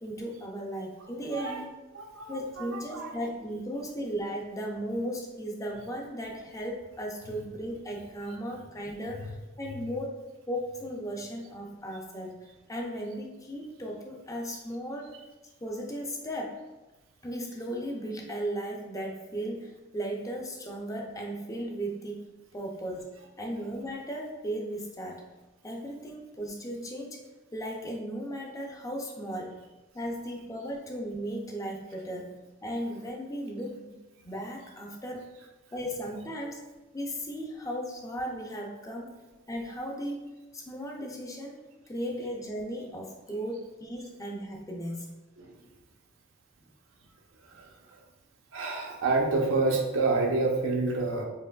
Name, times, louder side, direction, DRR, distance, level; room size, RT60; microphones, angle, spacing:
voice 1, 0.0-1.6 2.3-10.1 10.5-12.4 12.7-15.2 15.6-16.6 17.2-25.3 25.6-27.2 27.5-29.6 29.9-34.0 34.2-35.3 35.7-36.6 36.9-39.2 39.5-40.2 40.5-45.1, equal, 15° left, 0 dB, 0.4 m, -36 dB
voice 2, 1.9-3.2 45.4-45.5 47.4-48.0 48.5-51.2, right 3 dB, 80° right, 0 dB, 0.7 m, -28 dB
4.5 x 2.9 x 2.3 m, 1.1 s
head